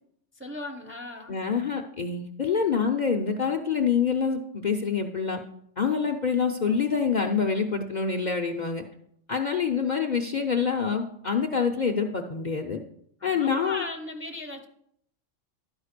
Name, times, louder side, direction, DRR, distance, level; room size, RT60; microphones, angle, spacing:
voice 1, 0.3-1.4 13.2-14.7, left 2 dB, 15° right, 3 dB, 0.6 m, -37 dB
voice 2, 1.3-5.4 5.8-8.8 9.3-12.8 13.2-13.8, left 6 dB, 45° left, 3 dB, 0.6 m, -26 dB
11.5 x 4.9 x 6.6 m, 0.72 s
omnidirectional pair, 1.3 m